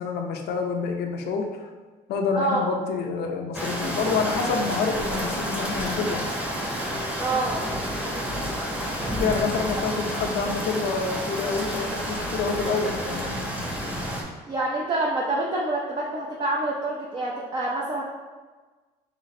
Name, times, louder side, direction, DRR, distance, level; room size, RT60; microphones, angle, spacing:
voice 1, 0.0-1.6 2.1-6.3 9.2-13.4, left 4 dB, 70° left, 3 dB, 0.6 m, -27 dB
sound 1, 3.5-14.2, equal, 10° right, 1.0 m, -30 dB
voice 2, 7.2-7.6 14.5-18.0, right 2 dB, 30° right, -4 dB, 0.7 m, -26 dB
3.9 x 3.6 x 3.2 m, 1.3 s
cardioid pair, 110°, 17 cm